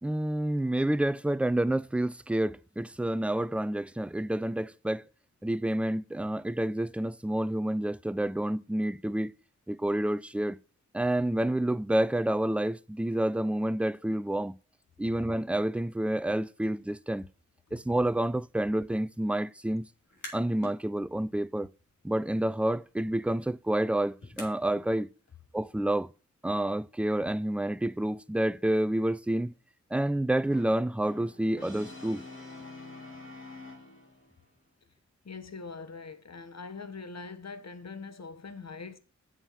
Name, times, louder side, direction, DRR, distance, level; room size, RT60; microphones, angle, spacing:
voice 1, 0.0-5.0 5.4-9.3 9.7-10.6 10.9-14.6 15.0-17.3 17.7-19.9 20.3-21.7 22.0-25.1 25.5-26.1 26.4-29.5 29.9-32.2, right 1 dB, 5° right, 0.3 m, -29 dB
sound 1, 20.0-20.8 21.2-24.9, left 1 dB, 75° left, 3.3 m, -49 dB
Brass instrument, 30.5-34.3, left 2 dB, 40° left, 2.8 m, -46 dB
voice 2, 35.2-39.0, left 4 dB, 60° left, 1.2 m, -42 dB
7.7 x 6.5 x 5.6 m
wide cardioid pair, 70°, 30 cm